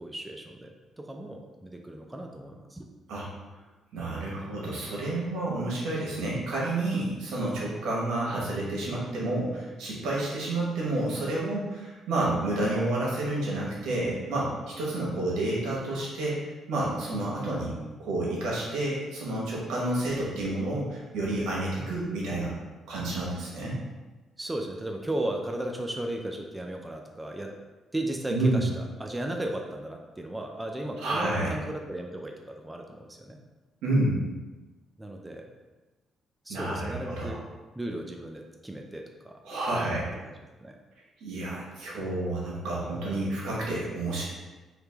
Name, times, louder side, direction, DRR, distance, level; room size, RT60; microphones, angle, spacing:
voice 1, 0.0-2.9 24.4-27.5 27.9-33.4 35.0-35.5 36.5-37.4 37.7-39.4 39.7-40.0 40.2-40.3 40.6-40.8, right 1 dB, 10° right, 2 dB, 0.4 m, -35 dB
voice 2, 3.9-16.4 16.7-22.6 22.9-23.8 28.3-28.6 31.0-31.5 33.8-34.2 36.5-37.4 39.4-40.1 41.2-44.2, right 2 dB, 85° right, -5 dB, 1.2 m, -30 dB
3.2 x 2.9 x 3.4 m, 1.2 s
cardioid pair, 90°, 0 cm